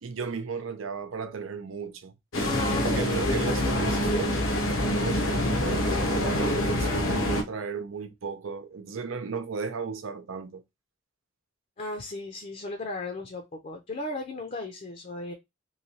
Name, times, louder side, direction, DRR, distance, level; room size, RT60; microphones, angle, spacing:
voice 1, 0.0-2.1 2.8-4.4 5.0-10.6, right 5 dB, 85° right, 0.6 m, -35 dB
sound 1, 2.3-7.4, left 1 dB, 85° left, 0.8 m, -26 dB
voice 2, 2.4-3.9 11.8-15.3, left 2 dB, 40° left, 0.5 m, -36 dB
3.1 x 2.7 x 2.7 m
head